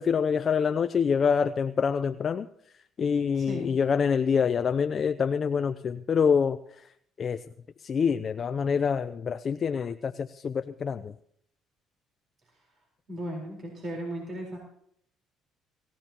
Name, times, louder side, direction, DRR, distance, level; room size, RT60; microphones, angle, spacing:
voice 1, 0.0-2.5 3.0-6.6 7.2-7.4 7.8-11.1, left 6 dB, 45° left, 10 dB, 0.5 m, -26 dB
voice 2, 3.3-3.7 13.1-14.6, right 1 dB, 45° right, -1 dB, 4.2 m, -36 dB
24.0 x 15.0 x 2.9 m, 0.69 s
cardioid pair, 90°, 0 cm